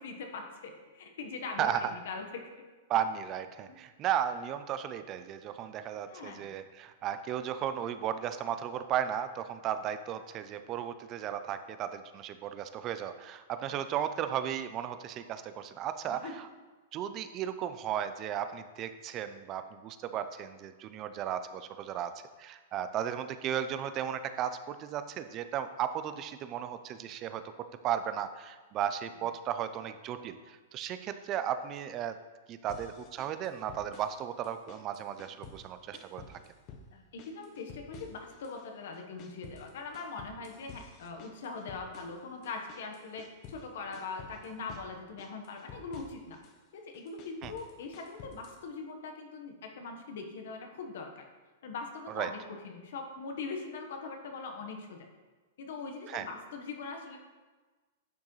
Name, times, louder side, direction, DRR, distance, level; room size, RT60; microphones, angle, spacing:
voice 1, 0.0-2.4 3.7-3.8 6.1-6.5 13.7-13.8 16.1-16.3 36.9-46.4 46.7-51.3 51.6-55.1 55.6-57.2, left 4 dB, 65° left, 4 dB, 1.2 m, -42 dB
voice 2, 1.6-1.9 2.9-16.5 16.9-22.1 22.4-27.4 27.8-32.2 32.5-36.4 47.4-47.5 52.1-52.3 56.1-56.2, right 9 dB, 25° right, 10 dB, 0.4 m, -35 dB
sound 1, 32.7-34.2 34.4-35.7 35.9-36.9 37.2-38.6 38.9-43.6 43.9-44.9 45.2-46.5 46.9-48.6, left 5 dB, 30° left, 0.8 m, -51 dB
10.5 x 6.1 x 3.2 m, 1.3 s
supercardioid pair, 165°, 0 cm